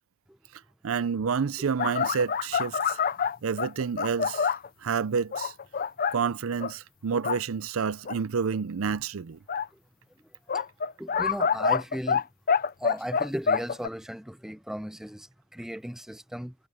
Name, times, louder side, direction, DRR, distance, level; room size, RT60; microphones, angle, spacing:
voice 1, 0.8-3.0 3.4-4.5 4.8-5.5 6.1-9.4, right 6 dB, 80° right, 0.5 m, -29 dB
sound 1, 1.8-4.7 5.3-6.2 6.6-6.7 7.1-7.4 8.1-8.2 9.5-9.7 10.5-12.2 12.5-13.9, left 6 dB, 45° left, 0.6 m, -26 dB
voice 2, 11.0-12.2 12.8-16.5, equal, ahead, 0.6 m, -36 dB
head